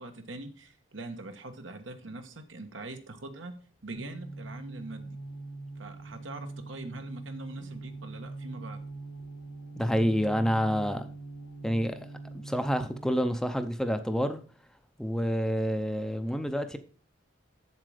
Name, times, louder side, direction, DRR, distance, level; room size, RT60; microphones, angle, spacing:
voice 1, 0.0-3.5 3.8-5.2 5.8-8.8, right 2 dB, 80° right, 1.4 m, -43 dB
sound 1, 3.9-13.3, right 3 dB, 90° left, 2.7 m, -42 dB
voice 2, 9.8-11.1 11.6-12.1 12.4-14.4 15.0-16.8, equal, 5° left, 0.6 m, -28 dB
7.7 x 7.4 x 4.9 m
head